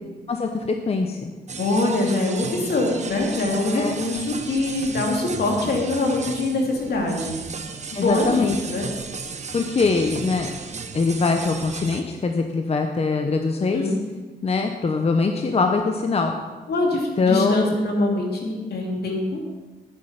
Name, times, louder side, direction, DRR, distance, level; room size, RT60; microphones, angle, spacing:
voice 1, 0.3-1.3 3.7-3.9 7.9-8.6 9.5-10.5 10.9-13.8 14.4-16.3 17.2-17.7, left 4 dB, 35° left, 4 dB, 0.9 m, -22 dB
sound 1, 1.5-12.0, right 5 dB, 45° right, 1.0 m, -35 dB
voice 2, 1.6-7.4 7.9-8.9 13.7-14.0 16.7-19.4, left 2 dB, 70° left, 0 dB, 2.7 m, -24 dB
9.8 x 9.8 x 5.9 m, 1.3 s
cardioid pair, 105°, 17 cm